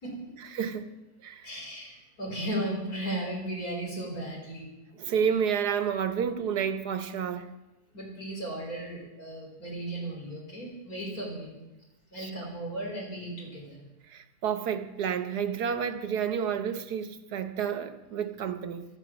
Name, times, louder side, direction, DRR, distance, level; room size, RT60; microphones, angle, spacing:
voice 1, 0.0-0.4 1.4-4.7 7.9-11.6 12.1-13.8, right 1 dB, 65° left, 4.1 m, -36 dB
voice 2, 0.5-0.9 1.2-1.5 5.0-7.5 14.1-18.9, right 7 dB, 85° right, 1.7 m, -30 dB
17.0 x 13.0 x 6.2 m
omnidirectional pair, 1.7 m